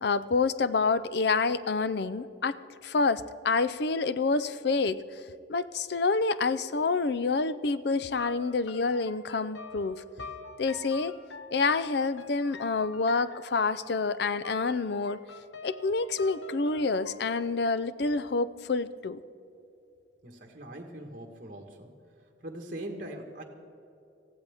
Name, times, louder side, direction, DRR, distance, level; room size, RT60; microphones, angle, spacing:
voice 1, 0.0-2.6 2.8-5.0 5.5-10.0 10.6-11.1 11.5-15.2 15.6-19.2, left 4 dB, 55° left, 14 dB, 0.5 m, -28 dB
sound 1, 8.1-17.2, left 3 dB, 75° left, 1.0 m, -47 dB
voice 2, 20.2-21.9 22.2-23.4, right 1 dB, 45° right, 2 dB, 1.4 m, -41 dB
19.0 x 15.0 x 3.5 m, 2.7 s
head